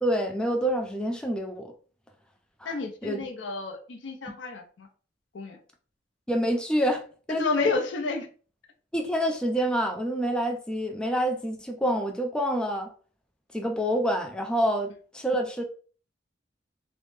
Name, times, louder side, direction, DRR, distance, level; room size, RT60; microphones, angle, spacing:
voice 1, 0.0-1.7 2.6-2.7 3.0-3.2 6.3-7.0 7.3-7.5 8.9-12.9 13.5-15.6, equal, 5° left, 3 dB, 0.3 m, -27 dB
voice 2, 2.6-4.9 5.3-5.6 7.3-8.3, left 3 dB, 85° left, 5 dB, 0.6 m, -30 dB
3.1 x 2.0 x 3.2 m, 0.41 s
head